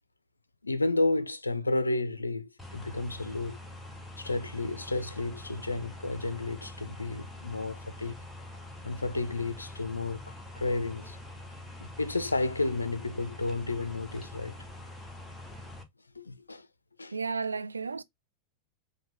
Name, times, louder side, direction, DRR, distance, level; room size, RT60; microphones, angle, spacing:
voice 1, 0.6-3.6 4.2-8.2 8.8-11.2 11.8-14.6 16.2-16.7 17.0-17.1, left 2 dB, 80° left, 0.4 m, -32 dB
sound 1, 2.6-15.8, left 1 dB, 5° left, 0.8 m, -45 dB
voice 2, 17.1-18.0, right 4 dB, 75° right, 0.3 m, -33 dB
4.9 x 2.2 x 3.2 m
figure-of-eight pair, 90°, 0 cm